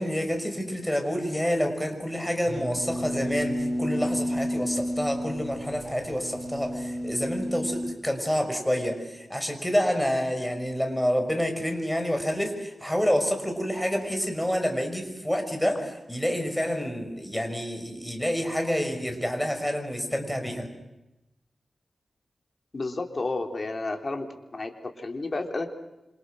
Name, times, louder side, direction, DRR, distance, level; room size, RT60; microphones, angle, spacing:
voice 1, 0.0-20.7, equal, 5° left, 5 dB, 5.6 m, -28 dB
sound 1, 2.5-7.9, equal, 35° right, 4.9 m, -31 dB
voice 2, 22.7-24.3 24.5-24.7 25.0-25.7, left 3 dB, 40° left, 4 dB, 3.5 m, -31 dB
28.0 x 26.5 x 6.4 m, 0.95 s
wide cardioid pair, 85°, 0 cm